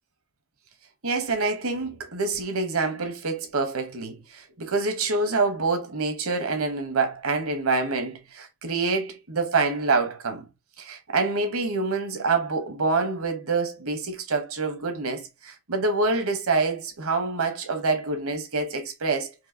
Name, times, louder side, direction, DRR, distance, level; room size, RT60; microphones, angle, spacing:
voice 1, 1.0-10.5 10.8-19.3, right 3 dB, 70° right, 1.1 m, -26 dB
4.6 x 2.8 x 2.8 m
head